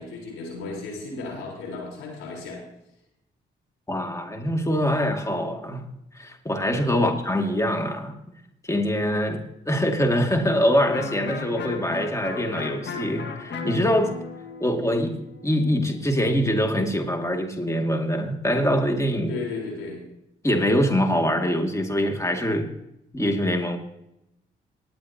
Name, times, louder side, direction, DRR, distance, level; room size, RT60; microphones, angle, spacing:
voice 1, 0.0-2.6 4.7-4.8 6.9-7.1 19.3-20.0, left 3 dB, 80° left, -1 dB, 4.1 m, -35 dB
voice 2, 3.9-5.9 6.1-8.2 8.6-14.1 14.6-19.3 20.4-22.7 23.1-23.8, equal, 15° left, 4 dB, 2.1 m, -24 dB
Electric guitar, 10.9-16.5, left 5 dB, 55° left, 1.7 m, -36 dB
19.0 x 10.5 x 2.8 m, 0.82 s
hypercardioid pair, 50°, 21 cm